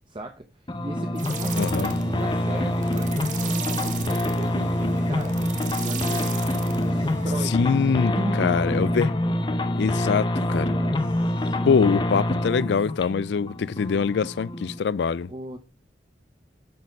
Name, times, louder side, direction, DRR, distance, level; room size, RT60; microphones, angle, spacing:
voice 1, 0.1-5.4 5.8-6.4 6.8-7.7 8.1-8.7 10.7-11.8 15.3-15.6, right 1 dB, 25° right, 0.7 m, -37 dB
sound 1, 0.7-14.8, left 1 dB, 25° left, 0.6 m, -26 dB
sound 2, 1.0-9.6, equal, 10° left, 1.8 m, -46 dB
sound 3, 1.1-7.5, right 5 dB, 45° right, 1.1 m, -36 dB
voice 2, 1.6-1.9 7.4-9.1 9.8-10.7 11.6-15.3, left 6 dB, 75° left, 0.4 m, -24 dB
10.5 x 4.3 x 5.3 m
head